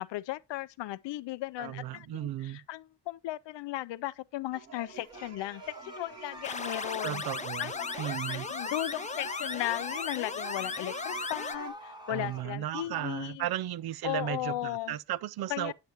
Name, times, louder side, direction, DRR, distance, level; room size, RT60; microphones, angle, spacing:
voice 1, 0.0-7.2 7.6-13.5 14.0-15.0 15.5-15.7, left 15 dB, 85° left, 0.6 m, -36 dB
voice 2, 1.6-2.6 7.0-7.7 8.0-8.5 12.1-15.7, right 12 dB, 65° right, 0.5 m, -35 dB
sound 1, 4.5-11.7, right 6 dB, 40° right, 1.8 m, -49 dB
sound 2, 5.1-12.5, right 1 dB, 10° right, 1.2 m, -46 dB
sound 3, 6.4-11.6, left 4 dB, 20° left, 0.5 m, -36 dB
9.3 x 8.7 x 2.9 m
cardioid pair, 105°, 42 cm